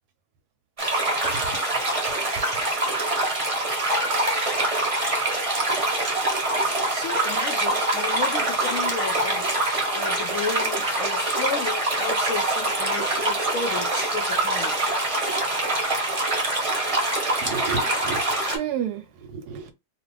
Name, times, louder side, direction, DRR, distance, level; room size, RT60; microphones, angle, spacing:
sound 1, 0.8-18.6, right 2 dB, 30° right, 0.7 m, -24 dB
voice 1, 6.9-9.5 9.9-14.9, left 5 dB, 70° left, 0.8 m, -33 dB
voice 2, 17.4-18.2 18.5-19.7, right 7 dB, 75° right, 1.0 m, -31 dB
2.8 x 2.4 x 3.2 m
omnidirectional pair, 1.9 m